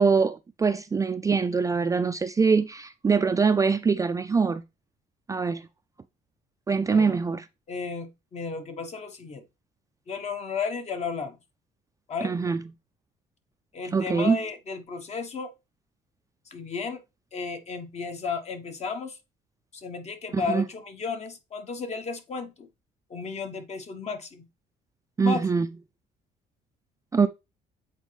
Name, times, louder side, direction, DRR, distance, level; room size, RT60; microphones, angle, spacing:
voice 1, 0.0-4.6 5.3-5.7 6.7-7.4 12.2-12.6 13.9-14.4 20.3-20.6 25.2-25.7 27.1-27.3, right 5 dB, 20° right, 0.3 m, -23 dB
voice 2, 7.7-9.4 10.1-11.4 12.1-12.3 13.7-15.5 16.5-17.0 17.3-19.2 19.7-22.7 23.1-24.5 25.2-25.5, left 4 dB, 40° left, 1.2 m, -33 dB
8.1 x 4.1 x 3.3 m
cardioid pair, 110°, 17 cm